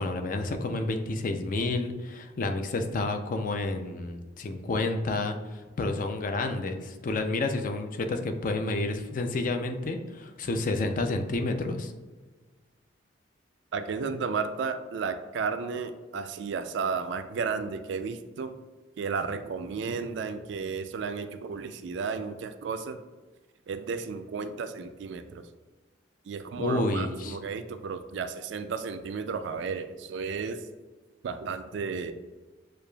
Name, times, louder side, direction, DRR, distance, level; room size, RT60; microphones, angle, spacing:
voice 1, 0.0-11.9 26.6-27.4, left 2 dB, 45° left, 6 dB, 0.4 m, -30 dB
voice 2, 13.7-18.5 19.0-23.0 23.7-25.4 26.3-30.7 31.2-32.1, right 5 dB, 65° right, 10 dB, 0.3 m, -33 dB
6.5 x 2.4 x 2.2 m, 1.3 s
head